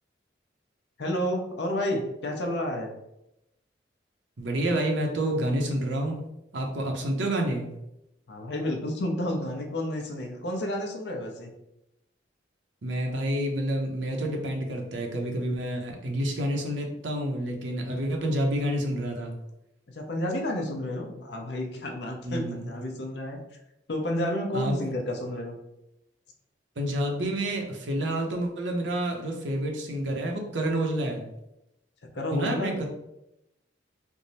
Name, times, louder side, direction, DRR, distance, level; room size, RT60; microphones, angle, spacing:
voice 1, 1.0-2.9 8.3-11.5 19.9-23.4 23.9-25.6 32.1-32.9, left 1 dB, 65° left, 2 dB, 0.6 m, -30 dB
voice 2, 4.4-6.2 6.5-7.7 12.8-19.3 22.2-22.7 24.5-24.8 26.8-31.3 32.3-32.9, right 1 dB, 80° right, 2 dB, 0.7 m, -29 dB
3.5 x 2.0 x 4.1 m, 0.86 s
head